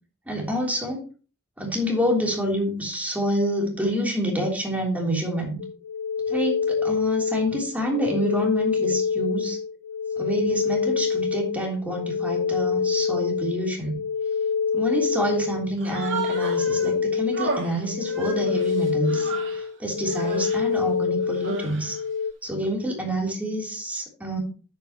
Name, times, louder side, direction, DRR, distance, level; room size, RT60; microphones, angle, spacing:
voice 1, 0.3-1.1 1.6-5.6 6.3-9.6 10.2-14.0 14.7-22.0 22.4-24.4, equal, 5° right, -1 dB, 3.3 m, -27 dB
sound 1, 5.6-22.3, left 5 dB, 70° left, 0.4 m, -26 dB
Human voice, 15.8-16.9 17.3-19.7 20.0-20.7 21.2-22.0, right 4 dB, 60° right, 2.3 m, -34 dB
9.8 x 8.2 x 3.0 m, 0.36 s
head